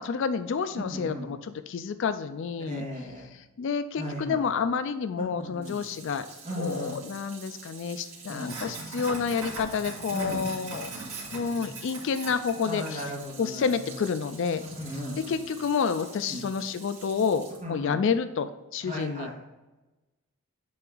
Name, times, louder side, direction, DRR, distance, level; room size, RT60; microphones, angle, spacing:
voice 1, 0.0-2.8 3.3-6.3 6.6-11.0 11.3-13.0 13.4-14.6 15.3-19.4, left 6 dB, 55° left, 11 dB, 0.3 m, -29 dB
voice 2, 0.7-1.3 2.7-3.3 3.9-4.4 5.4-5.8 6.4-7.0 8.3-8.5 10.1-10.5 11.2-11.7 12.7-14.0 14.6-15.5 16.3-16.4 17.6-18.0 18.8-19.3, equal, 30° right, -5 dB, 2.0 m, -36 dB
Sink (filling or washing), 5.6-17.6, right 3 dB, 70° right, 2.0 m, -42 dB
8.5 x 3.5 x 3.8 m, 1.1 s
head